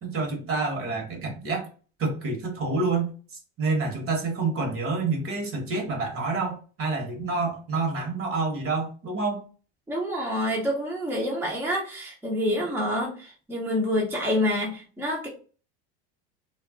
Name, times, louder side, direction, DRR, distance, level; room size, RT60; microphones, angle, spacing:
voice 1, 0.0-1.7 2.0-9.4, right 3 dB, 40° right, 3 dB, 1.2 m, -28 dB
voice 2, 9.9-15.3, left 1 dB, 5° right, -3 dB, 0.7 m, -27 dB
2.3 x 2.1 x 3.6 m, 0.38 s
supercardioid pair, 95°, 33 cm